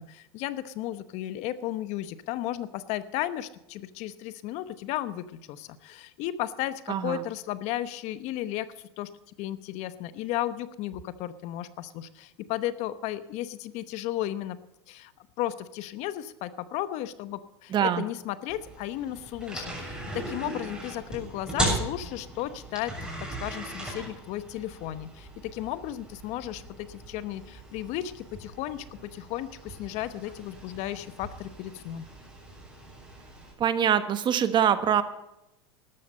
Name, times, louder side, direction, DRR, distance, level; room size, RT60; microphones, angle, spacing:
voice 1, 0.0-8.7 9.0-9.1 9.4-14.6 14.9-22.9 23.4-32.1, left 13 dB, 55° left, 14 dB, 1.0 m, -34 dB
voice 2, 6.9-7.2 17.7-18.0 33.6-35.0, right 9 dB, 35° right, 11 dB, 1.3 m, -24 dB
sound 1, 18.5-33.5, right 1 dB, 5° right, 6.7 m, -38 dB
13.5 x 11.5 x 5.5 m, 0.89 s
hypercardioid pair, 110°, 14 cm